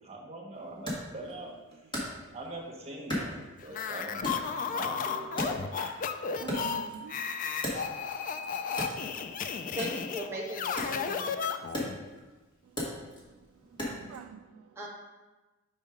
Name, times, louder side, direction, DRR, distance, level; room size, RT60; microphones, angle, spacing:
voice 1, 0.0-1.8 2.3-5.6, right 2 dB, 30° right, 1.3 m, -43 dB
Wood, 0.9-2.6 3.1-3.9 4.2-6.1 6.3-8.3 8.7-14.2, equal, 20° left, 1.6 m, -38 dB
voice 2, 2.0-2.4 6.4-8.0 8.3-9.8 11.6-11.7 12.0-12.2 12.6-14.8, right 6 dB, 85° right, 0.3 m, -49 dB
sound 1, 3.7-12.0, left 6 dB, 40° left, 0.3 m, -34 dB
voice 3, 9.7-11.4 14.8-14.9, equal, 10° right, 0.9 m, -38 dB
5.1 x 4.4 x 5.0 m
head